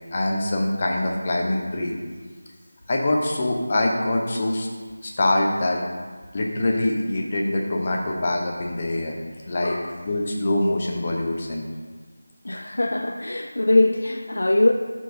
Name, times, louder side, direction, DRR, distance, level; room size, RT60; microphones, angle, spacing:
voice 1, 0.1-1.9 2.9-4.7 5.0-5.8 6.3-9.2 9.5-11.6, left 1 dB, 35° left, 0 dB, 0.9 m, -24 dB
voice 2, 12.4-14.7, left 2 dB, 70° left, 4 dB, 0.4 m, -21 dB
10.0 x 4.6 x 2.8 m, 1.5 s
figure-of-eight pair, 170°, 0 cm